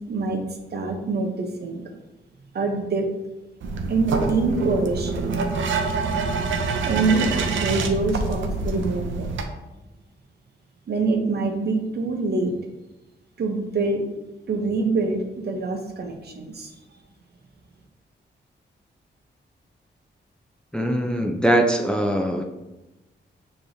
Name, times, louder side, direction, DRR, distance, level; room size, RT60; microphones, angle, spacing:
voice 1, 0.1-1.8 2.5-3.1 3.9-5.4 6.8-9.3 10.9-12.5 13.4-14.0 14.5-16.7, right 3 dB, 55° right, 3 dB, 0.8 m, -25 dB
sound 1, 3.6-9.4, right 4 dB, 90° right, 0.5 m, -26 dB
voice 2, 20.7-22.4, right 1 dB, 5° left, 3 dB, 0.4 m, -21 dB
6.6 x 3.0 x 2.7 m, 1.0 s
cardioid pair, 90°, 19 cm